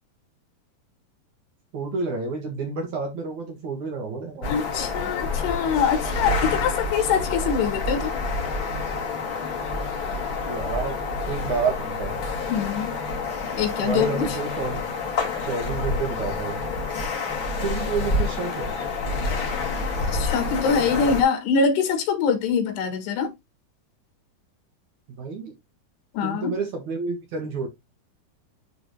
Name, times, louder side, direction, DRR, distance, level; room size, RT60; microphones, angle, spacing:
voice 1, 1.7-4.5 10.5-11.0 11.3-12.2 13.8-14.8 15.4-16.7 17.6-18.7 25.1-25.5 26.2-27.7, right 4 dB, 55° right, 2.5 m, -29 dB
sound 1, 4.4-21.2, left 3 dB, 40° left, 2.0 m, -28 dB
voice 2, 4.5-8.1 12.5-12.9 13.6-14.3 20.1-23.3 26.1-26.5, left 6 dB, 80° left, 3.8 m, -24 dB
11.0 x 3.9 x 3.0 m
omnidirectional pair, 4.7 m